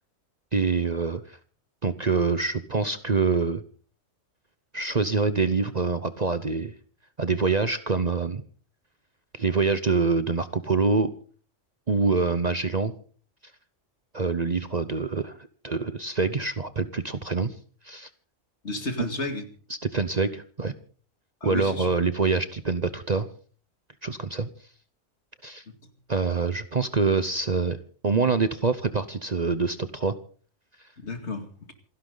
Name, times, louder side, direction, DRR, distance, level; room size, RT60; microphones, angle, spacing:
voice 1, 0.5-1.4 1.8-3.6 4.7-6.7 7.2-8.4 9.3-11.1 11.9-12.9 14.1-15.4 15.6-17.5 17.8-18.1 19.9-20.7 21.4-23.3 24.0-24.5 25.4-25.6 26.1-27.8 28.0-30.1, right 4 dB, 35° right, 0.9 m, -25 dB
voice 2, 18.6-19.4 21.4-21.9 31.0-31.7, left 2 dB, 60° left, 2.6 m, -32 dB
27.5 x 11.5 x 3.9 m
omnidirectional pair, 1.3 m